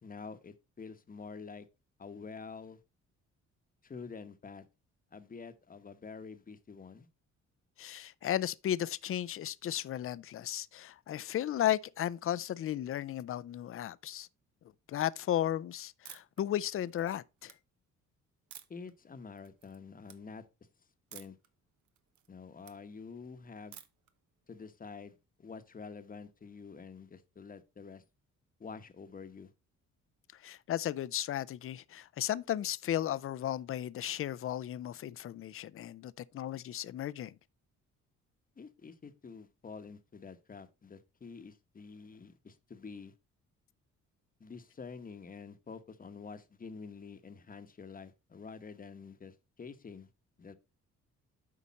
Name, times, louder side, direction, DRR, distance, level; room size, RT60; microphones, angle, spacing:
voice 1, 0.0-1.7 2.0-2.8 3.8-4.6 5.1-7.1 18.7-20.4 21.1-21.4 22.3-23.8 24.5-28.0 28.6-29.5 38.6-43.1 44.4-50.1 50.4-50.5, left 5 dB, 30° left, 1.0 m, -48 dB
voice 2, 7.8-14.3 14.9-17.5 30.4-37.3, left 11 dB, 45° left, 0.5 m, -35 dB
sound 1, 16.0-16.4 16.9-17.5 18.5-18.9 19.4-19.8 20.0-20.2 21.1-21.5 21.8-22.8 23.7-24.1, right 10 dB, 70° right, 1.0 m, -52 dB
8.5 x 5.1 x 4.1 m
cardioid pair, 90°, 30 cm